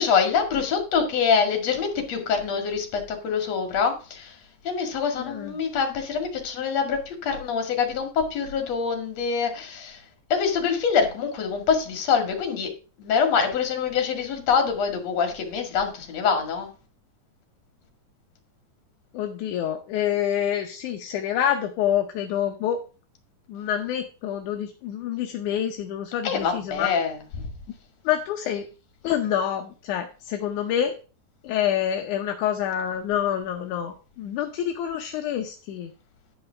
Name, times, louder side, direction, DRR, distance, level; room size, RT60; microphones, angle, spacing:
voice 1, 0.0-4.4 4.6-10.0 10.3-12.7 13.0-16.7 26.2-27.5, left 6 dB, 55° left, 5 dB, 3.1 m, -25 dB
voice 2, 5.2-5.5 19.1-22.8 23.5-26.9 28.0-28.7 29.0-31.0 31.4-35.9, left 10 dB, 70° left, 5 dB, 2.2 m, -27 dB
10.5 x 5.6 x 5.7 m, 0.36 s
omnidirectional pair, 3.9 m